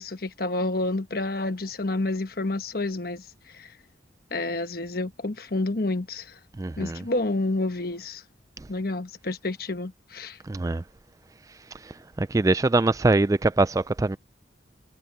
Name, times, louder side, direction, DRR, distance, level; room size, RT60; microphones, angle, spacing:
voice 1, 0.0-3.2 3.5-3.7 4.3-6.3 6.8-8.2 8.7-10.4, left 2 dB, 50° left, 1.2 m, -29 dB
voice 2, 6.6-7.1 10.5-10.8 11.8-14.2, right 2 dB, 15° right, 0.3 m, -23 dB
head